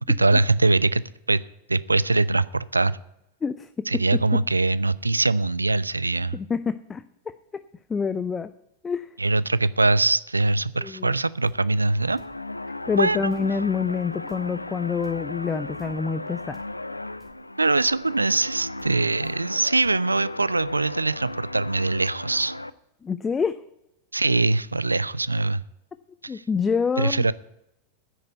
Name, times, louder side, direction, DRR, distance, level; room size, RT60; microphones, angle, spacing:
voice 1, 0.1-1.4 1.7-3.0 3.9-6.4 9.2-12.2 13.0-13.3 17.6-22.5 24.1-25.6 26.2-26.4 27.0-27.3, right 2 dB, 80° right, 18 dB, 0.4 m, -22 dB
voice 2, 3.4-3.9 6.3-7.6 7.9-8.5 8.8-9.1 10.8-11.1 12.9-16.6 23.0-23.6 26.3-27.3, left 5 dB, 15° left, 13 dB, 0.5 m, -27 dB
sound 1, 11.4-11.6 12.2-12.4 13.3-13.5 14.3-14.4 15.0-15.1 15.8-16.0 16.5-16.7 17.2-17.4 17.8-18.0 18.8-19.0 19.2-19.4 19.8-20.0, equal, ahead, 2.7 m, -57 dB
sound 2, 11.6-22.7, left 2 dB, 85° left, 0.4 m, -36 dB
9.9 x 6.6 x 9.1 m, 0.84 s
figure-of-eight pair, 90°, 0 cm